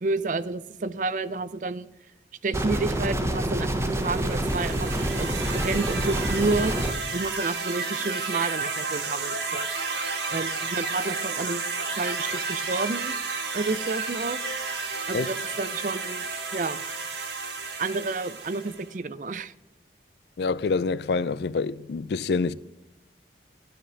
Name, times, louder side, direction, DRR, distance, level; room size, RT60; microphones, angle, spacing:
voice 1, 0.0-1.9 2.4-4.9 5.2-6.7 7.1-9.7 10.3-13.2 13.5-14.4 15.1-16.3 16.5-16.8 17.8-19.5, right 3 dB, 45° right, 0.4 m, -30 dB
sound 1, 2.5-6.9, right 1 dB, 15° right, 0.7 m, -27 dB
sound 2, 3.8-18.9, right 4 dB, 80° right, 1.4 m, -32 dB
voice 2, 20.4-22.5, left 4 dB, 70° left, 0.4 m, -26 dB
12.5 x 5.2 x 6.0 m
head